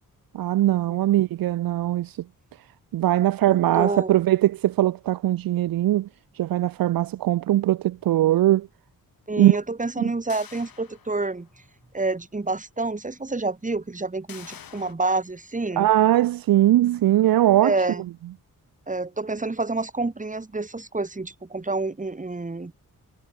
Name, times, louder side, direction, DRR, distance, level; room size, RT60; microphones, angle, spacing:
voice 1, 0.3-2.1 2.9-6.1 6.4-8.7 9.4-9.6 10.0-10.1 15.8-17.8, right 14 dB, 75° right, 0.5 m, -20 dB
voice 2, 3.5-4.1 9.3-11.5 11.9-15.9 17.6-18.0 18.9-22.7, right 3 dB, 20° right, 1.9 m, -28 dB
sound 1, 10.3-11.6 12.0-12.1 14.3-14.9, left 8 dB, 75° left, 2.9 m, -46 dB
cardioid pair, 70°, 35 cm